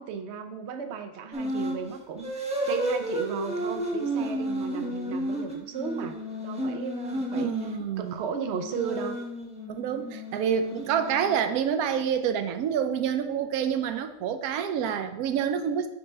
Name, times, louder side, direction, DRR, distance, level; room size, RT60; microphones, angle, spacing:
voice 1, 0.0-6.2 6.4-7.5 8.0-9.2, right 6 dB, 60° right, 6 dB, 0.8 m, -35 dB
sound 1, 1.3-1.8 2.2-7.8 8.6-11.5, right 1 dB, 5° right, 0.5 m, -32 dB
voice 2, 7.3-8.1 9.7-15.9, right 8 dB, 80° right, 8 dB, 1.1 m, -27 dB
6.0 x 3.2 x 5.3 m, 0.98 s
omnidirectional pair, 1.6 m